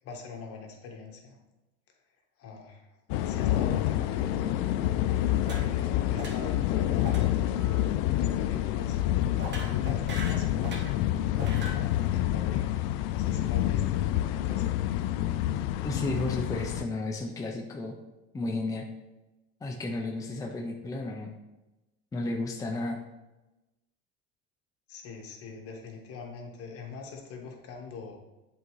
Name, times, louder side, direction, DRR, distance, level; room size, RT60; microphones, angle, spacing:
voice 1, 0.0-1.4 2.4-4.6 5.0-7.6 8.0-11.3 11.6-12.8 13.1-15.2 24.9-28.2, left 4 dB, 50° left, 1 dB, 1.4 m, -43 dB
sound 1, 3.1-16.8, left 13 dB, 75° left, 0.4 m, -28 dB
sound 2, 5.4-5.9 6.2-6.6 7.0-7.3 7.5-7.8 9.4-11.0 11.3-11.8, right 2 dB, 35° right, 1.3 m, -40 dB
voice 2, 15.8-18.0 18.3-18.9 19.6-21.3 22.1-23.0, left 2 dB, 10° left, 1 dB, 0.5 m, -33 dB
7.9 x 3.9 x 3.1 m, 1.0 s
supercardioid pair, 120°, 29 cm